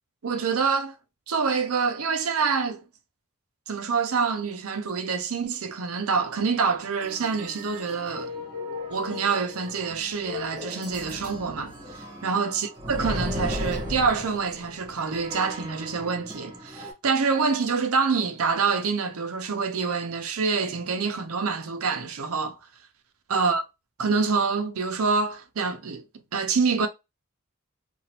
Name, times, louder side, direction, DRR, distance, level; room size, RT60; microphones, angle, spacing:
voice 1, 0.2-1.0 1.3-2.8 3.7-8.3 8.9-11.7 12.2-22.6 23.3-23.6 24.0-26.0 26.3-26.9, right 5 dB, 85° right, 0.6 m, -26 dB
sound 1, 7.0-16.9, left 1 dB, 20° right, 1.2 m, -36 dB
2.9 x 2.4 x 2.8 m
head